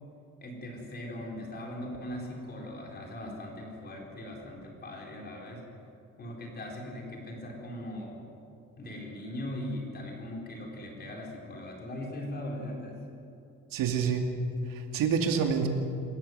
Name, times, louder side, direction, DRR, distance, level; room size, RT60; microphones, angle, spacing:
voice 1, 0.4-5.6 6.2-8.3 8.8-13.0, left 1 dB, 30° left, -1 dB, 4.2 m, -39 dB
voice 2, 13.7-14.2 14.7-15.7, right 6 dB, 80° right, 4 dB, 2.6 m, -27 dB
27.5 x 14.5 x 7.8 m, 2.7 s
cardioid pair, 180°, 33 cm